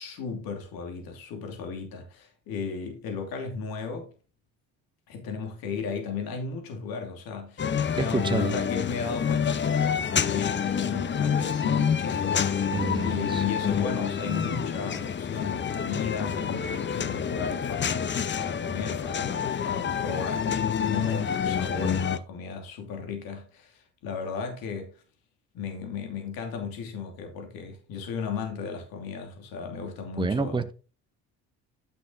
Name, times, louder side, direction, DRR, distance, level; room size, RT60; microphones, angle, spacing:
voice 1, 0.0-4.1 5.1-18.0 18.4-24.9 25.5-30.6, left 5 dB, 75° left, 2.8 m, -35 dB
sound 1, 7.6-22.2, left 7 dB, 30° left, 0.7 m, -28 dB
voice 2, 8.0-8.6 12.7-13.4 30.2-30.7, right 3 dB, 15° right, 0.9 m, -28 dB
9.6 x 6.0 x 3.9 m
supercardioid pair, 85°, 36 cm